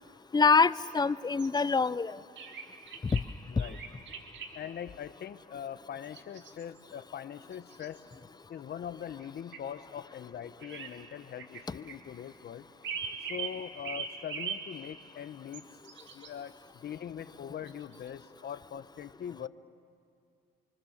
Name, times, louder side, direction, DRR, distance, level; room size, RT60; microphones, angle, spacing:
voice 1, 0.3-2.2 3.1-3.2 11.7-11.8, left 4 dB, 20° left, 18 dB, 0.5 m, -25 dB
sound 1, 0.7-0.9 1.4-1.6 2.4-3.3 3.6-4.5 6.0-6.9 7.5-8.2 9.0-9.3 9.5-9.6 10.6-10.9 11.4-12.0 12.8-13.6 13.8-14.6 15.5-16.3 17.7-18.1, right 6 dB, 70° right, 2.3 m, -40 dB
voice 2, 3.5-3.8 4.5-8.0 8.5-12.7 13.3-15.7 16.1-19.5, left 9 dB, 55° left, 12 dB, 0.9 m, -42 dB
25.5 x 25.0 x 7.2 m, 2.3 s
cardioid pair, 90°, 20 cm